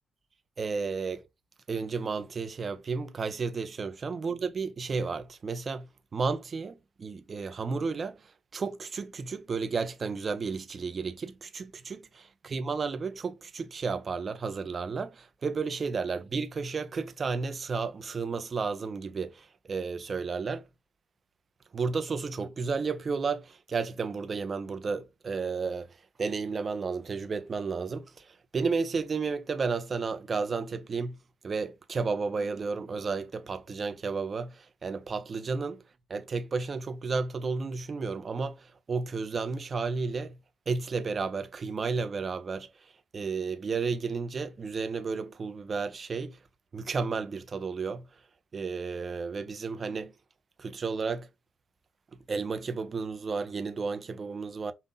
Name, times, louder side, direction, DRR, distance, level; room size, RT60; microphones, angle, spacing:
voice 1, 0.6-1.2 1.7-20.6 21.7-25.9 26.2-31.2 31.4-35.8 36.1-40.4 40.7-42.7 43.1-46.4 46.7-48.1 48.5-50.1 50.6-51.3 52.3-54.7, right 4 dB, 40° right, 0.8 m, -32 dB
5.7 x 2.4 x 3.8 m
cardioid pair, 90°, 0 cm